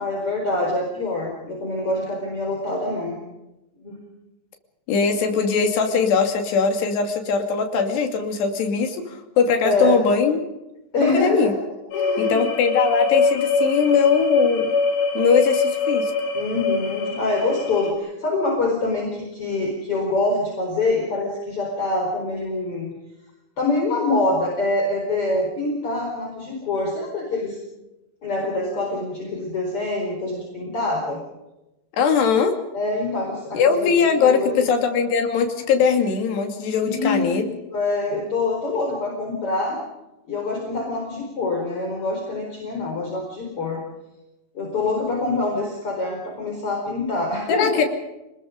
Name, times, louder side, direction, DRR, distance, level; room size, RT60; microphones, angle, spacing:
voice 1, 0.0-3.2 3.8-4.0 9.6-10.0 10.9-11.5 11.9-12.4 16.3-22.9 23.6-27.6 28.2-31.2 32.7-34.7 36.8-39.8 40.3-43.8 44.5-47.8, left 2 dB, 35° left, 0 dB, 5.2 m, -25 dB
voice 2, 4.9-10.4 11.0-11.5 12.2-14.7 15.1-16.1 32.0-32.6 33.5-37.5 47.5-47.8, left 5 dB, 80° left, 5 dB, 4.7 m, -20 dB
sound 1, 11.9-17.9, left 4 dB, 60° left, 5.1 m, -23 dB
29.5 x 20.5 x 5.3 m, 0.96 s
omnidirectional pair, 4.7 m